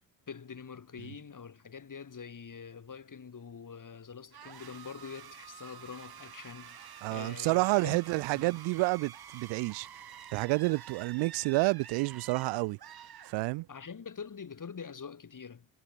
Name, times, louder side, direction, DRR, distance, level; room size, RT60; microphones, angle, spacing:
voice 1, 0.3-8.0 8.3-8.6 13.7-15.7, left 6 dB, 50° left, 6.7 m, -45 dB
sound 1, 4.3-13.9, right 9 dB, 60° right, 3.9 m, -49 dB
voice 2, 7.0-9.9 10.3-12.8 13.3-13.6, right 24 dB, 85° right, 0.9 m, -29 dB
supercardioid pair, 50°, 41 cm